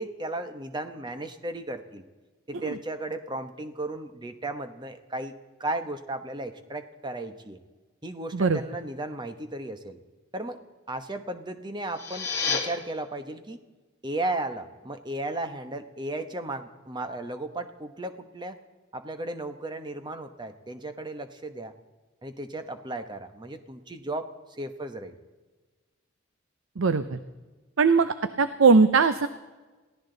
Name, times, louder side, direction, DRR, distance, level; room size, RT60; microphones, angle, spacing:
voice 1, 0.0-2.0 2.5-5.3 5.6-7.6 8.0-10.0 10.3-10.6 10.9-13.6 14.0-18.6 18.9-21.7 22.2-25.1, right 2 dB, 20° right, 8 dB, 1.1 m, -35 dB
sound 1, 11.8-12.6, left 5 dB, 15° left, 3.0 m, -29 dB
voice 2, 26.8-27.2 27.8-29.3, right 4 dB, 70° right, 12 dB, 0.6 m, -20 dB
22.5 x 16.0 x 3.9 m, 1.3 s
head